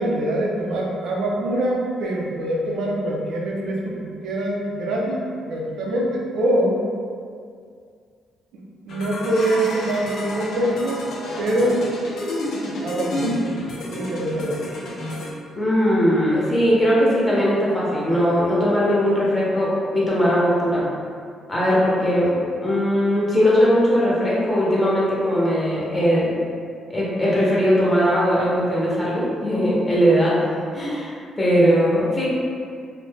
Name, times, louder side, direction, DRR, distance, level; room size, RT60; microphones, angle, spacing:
voice 1, 0.0-6.9 8.5-11.8 12.8-13.4 13.9-14.8, right 1 dB, 80° right, -2 dB, 0.5 m, -24 dB
sound 1, 8.9-15.3, left 1 dB, 75° left, 0.5 m, -30 dB
voice 2, 15.6-20.8 21.5-22.4 22.6-26.3 26.9-32.3, equal, 20° left, -7 dB, 0.8 m, -19 dB
2.5 x 2.1 x 3.3 m, 2.2 s
cardioid pair, 90°, 0 cm